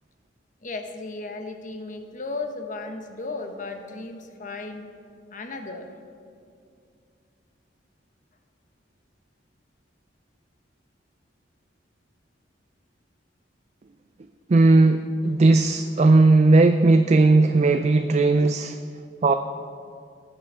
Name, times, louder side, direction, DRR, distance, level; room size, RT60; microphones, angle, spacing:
voice 1, 0.6-4.9 5.3-5.9, left 3 dB, 45° left, 6 dB, 1.1 m, -35 dB
voice 2, 14.5-18.8 19.2-19.3, right 2 dB, 40° right, 8 dB, 0.4 m, -17 dB
18.5 x 7.0 x 5.6 m, 2.3 s
head